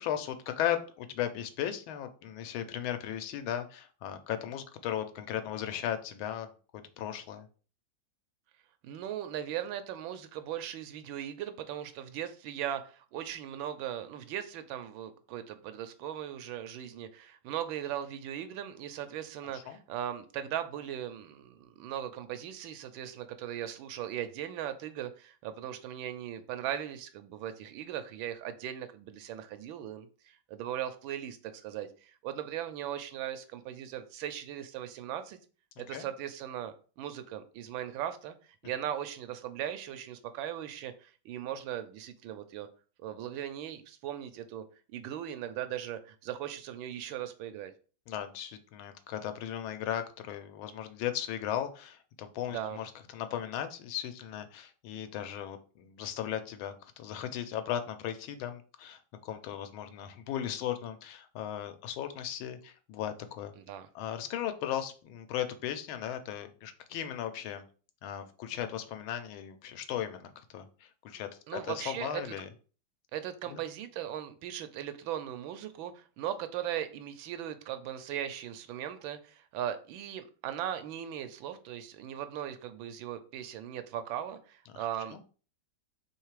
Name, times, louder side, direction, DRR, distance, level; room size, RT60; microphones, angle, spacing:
voice 1, 0.0-6.5 7.0-7.5 19.5-19.8 35.9-36.1 48.1-63.5 63.9-67.6 68.0-72.5 73.5-73.6 84.7-84.8 85.1-85.2, left 10 dB, 90° left, 8 dB, 1.5 m, -37 dB
voice 2, 8.8-35.4 35.8-38.3 38.6-42.7 43.0-44.6 44.9-47.7 52.5-52.8 63.6-63.9 71.5-72.3 73.1-85.2, right 10 dB, 80° right, 9 dB, 1.3 m, -38 dB
3.5 x 3.3 x 4.7 m, 0.38 s
omnidirectional pair, 2.2 m